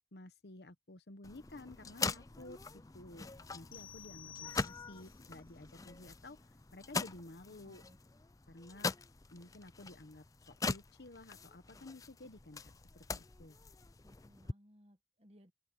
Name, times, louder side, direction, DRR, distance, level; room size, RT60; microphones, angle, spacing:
voice 1, 0.1-6.4 6.7-7.8 8.5-8.9 9.3-10.2 10.6-13.6, left 2 dB, 75° left, 1.0 m, -53 dB
sound 1, 1.2-14.5, left 4 dB, 20° left, 0.4 m, -43 dB
sound 2, 3.7-5.2, left 10 dB, 50° left, 0.7 m, -52 dB
voice 2, 7.5-8.0 14.0-15.5, equal, 35° right, 1.4 m, -63 dB
open air
head